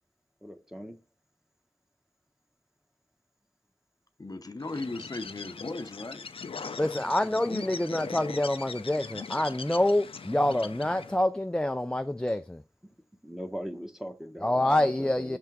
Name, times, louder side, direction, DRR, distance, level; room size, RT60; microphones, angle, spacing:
voice 1, 0.4-1.0 12.8-12.9 13.2-15.4, equal, 5° right, 1.1 m, -40 dB
voice 2, 4.2-6.7, left 2 dB, 45° left, 0.6 m, -38 dB
Bird, 4.6-11.2, left 5 dB, 90° left, 0.4 m, -40 dB
voice 3, 6.8-12.6 14.4-15.4, left 1 dB, 10° left, 0.3 m, -27 dB
6.6 x 3.4 x 4.6 m
cardioid pair, 40°, 9 cm